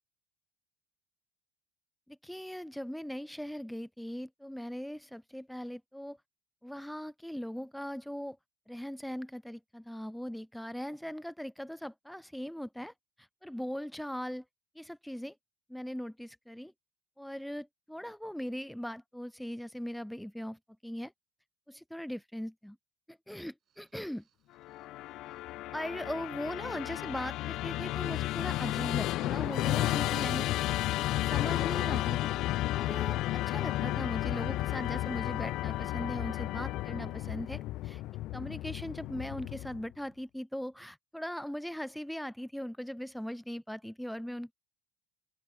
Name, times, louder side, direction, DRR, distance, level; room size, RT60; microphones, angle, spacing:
voice 1, 2.1-6.2 6.6-8.4 8.7-14.4 14.8-15.3 15.7-16.7 17.2-21.1 21.7-22.8 23.1-24.2 25.7-30.8 31.2-32.3 32.7-38.0 38.3-44.5, equal, ahead, 0.5 m, -40 dB
sound 1, 23.6-34.0, right 9 dB, 45° right, 5.7 m, -72 dB
Musical instrument, 24.6-39.9, left 16 dB, 55° left, 0.4 m, -33 dB
open air
hypercardioid pair, 65°, 0 cm